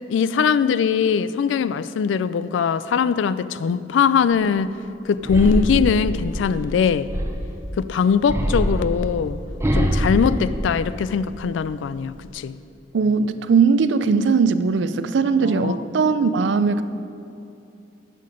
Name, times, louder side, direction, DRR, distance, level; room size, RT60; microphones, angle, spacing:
voice 1, 0.1-4.8 5.0-7.1 7.7-9.4 9.7-12.6 15.4-15.8, left 6 dB, 85° left, 15 dB, 0.3 m, -21 dB
sound 1, 5.2-7.7 8.3-11.3 11.7-12.3, equal, 15° right, 0.6 m, -24 dB
voice 2, 12.9-16.8, right 5 dB, 70° right, 12 dB, 0.4 m, -19 dB
9.0 x 7.6 x 5.2 m, 2.7 s
head